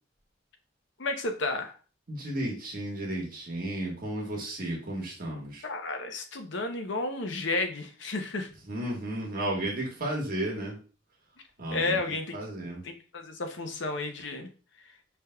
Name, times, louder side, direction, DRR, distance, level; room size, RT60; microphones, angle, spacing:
voice 1, 1.0-1.8 5.6-8.5 11.7-12.4 12.8-14.5, left 2 dB, 75° left, 6 dB, 0.7 m, -32 dB
voice 2, 2.1-5.6 8.7-10.8 11.6-12.0 12.3-12.8, right 1 dB, 50° right, -2 dB, 1.4 m, -33 dB
5.1 x 3.4 x 2.2 m, 0.37 s
head